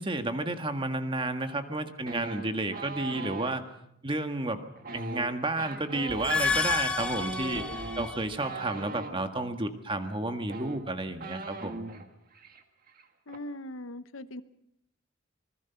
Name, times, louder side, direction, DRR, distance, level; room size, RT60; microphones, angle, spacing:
voice 1, 0.0-3.6 4.0-4.6 4.9-7.6 8.0-11.8, right 2 dB, 25° right, 7 dB, 1.7 m, -31 dB
sound 1, 2.1-3.5 4.8-9.1 10.1-10.2 10.4-12.1 12.3-12.6 12.9-13.4, right 3 dB, 45° right, 1.8 m, -40 dB
sound 2, 6.1-8.4, left 4 dB, 5° left, 1.5 m, -30 dB
voice 2, 13.3-14.4, left 1 dB, 85° left, 12 dB, 1.0 m, -40 dB
26.5 x 20.5 x 5.8 m, 0.76 s
head